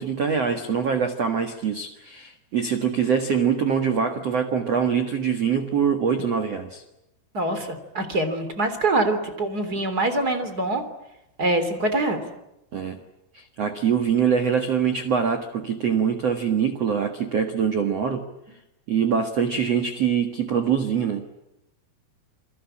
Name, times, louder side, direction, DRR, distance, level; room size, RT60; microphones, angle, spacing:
voice 1, 0.0-6.8 9.7-9.8 12.7-13.0 13.3-18.2 18.9-21.3, right 7 dB, 70° right, 6 dB, 1.5 m, -24 dB
voice 2, 7.3-10.8 11.4-12.2, right 2 dB, 25° right, 9 dB, 2.9 m, -24 dB
28.5 x 23.5 x 8.7 m, 0.89 s
omnidirectional pair, 5.8 m